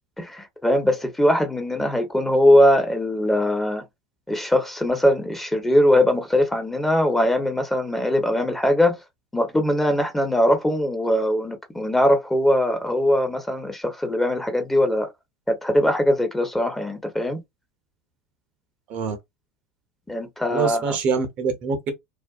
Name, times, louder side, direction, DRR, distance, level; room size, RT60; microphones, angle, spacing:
voice 1, 0.2-3.8 4.3-9.0 9.3-15.1 15.5-17.4 20.1-21.0, left 1 dB, 10° left, 0.9 m, -21 dB
voice 2, 20.5-21.9, right 5 dB, 50° right, 0.7 m, -25 dB
2.5 x 2.2 x 2.3 m
hypercardioid pair, 80°, 3 cm